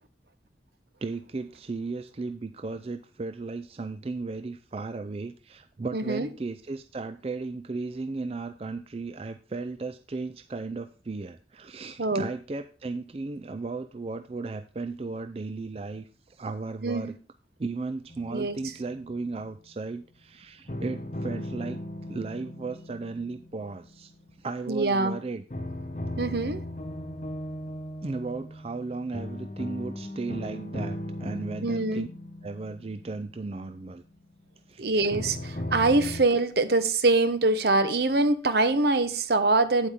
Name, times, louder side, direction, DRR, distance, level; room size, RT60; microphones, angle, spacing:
voice 1, 1.0-17.2 17.6-21.8 22.1-24.1 24.4-25.4 26.2-26.4 28.0-32.1 32.4-34.0 34.7-34.8, right 3 dB, 35° right, 9 dB, 0.4 m, -35 dB
voice 2, 5.9-6.3 12.0-12.3 16.8-17.1 18.3-18.6 24.7-25.2 26.2-26.6 31.6-32.0 34.8-39.9, right 2 dB, 65° right, 11 dB, 1.0 m, -24 dB
sound 1, 18.1-19.3 20.7-24.7 25.5-34.3 35.1-36.2, left 1 dB, 40° left, 0.9 m, -37 dB
9.2 x 8.0 x 3.6 m, 0.36 s
head